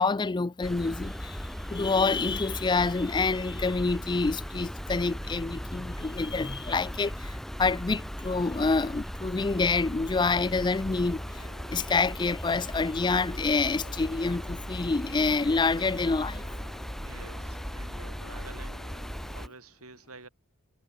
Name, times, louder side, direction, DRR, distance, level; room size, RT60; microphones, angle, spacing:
voice 1, 0.0-1.4 1.7-16.6, left 4 dB, 20° left, 0.4 m, -27 dB
sound 1, 0.6-19.5, equal, ahead, 1.0 m, -38 dB
sound 2, 10.8-19.5, left 3 dB, 60° left, 2.4 m, -52 dB
voice 2, 17.0-18.8 19.3-20.3, right 3 dB, 75° right, 7.8 m, -49 dB
head